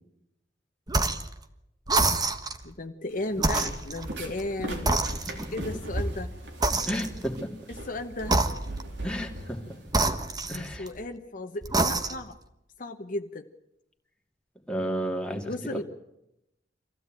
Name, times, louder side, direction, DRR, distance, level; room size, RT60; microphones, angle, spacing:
sound 1, 0.9-1.3 1.9-2.6 3.4-4.5 4.9-5.7 6.6-7.4 8.2-9.0 9.9-11.0 11.6-12.4, right 2 dB, 20° right, 1.4 m, -27 dB
voice 1, 2.6-4.9 5.5-6.3 7.7-8.4 10.4-12.4 12.8-13.5 15.4-15.8, left 2 dB, 50° left, 5 dB, 1.1 m, -35 dB
sound 2, 3.1-10.5, right 1 dB, 90° right, 4.2 m, -38 dB
voice 2, 6.9-7.5 9.0-9.8 10.5-10.9 14.7-15.8, equal, 5° left, 1 dB, 2.6 m, -32 dB
25.5 x 16.0 x 9.1 m, 0.86 s
head